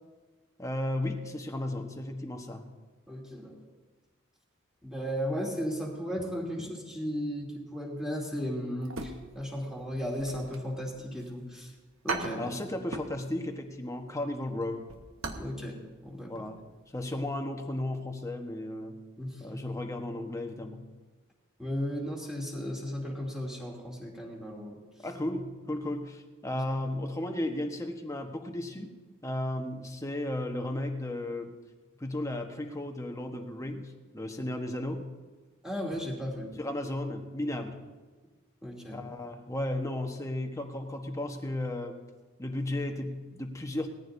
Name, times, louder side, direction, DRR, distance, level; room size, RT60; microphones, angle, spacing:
voice 1, 0.6-2.7 12.4-14.9 16.3-16.6 16.9-19.0 19.4-20.9 25.0-28.9 29.2-31.5 32.0-35.2 36.6-37.8 38.9-42.0 42.4-43.9, left 1 dB, 15° left, 4 dB, 1.2 m, -34 dB
voice 2, 3.1-3.5 4.8-11.7 12.0-12.4 15.3-16.3 19.2-19.6 21.6-24.8 26.5-26.6 35.6-36.5 38.6-39.1, equal, ahead, -3 dB, 2.8 m, -35 dB
sound 1, 8.8-9.6 9.9-11.3 11.6-11.7 12.1-13.2 13.5-13.7 14.1-15.5 15.8-15.9 16.4-16.6 16.9-17.0, right 3 dB, 70° right, 1.2 m, -38 dB
20.0 x 14.0 x 2.7 m, 1.3 s
head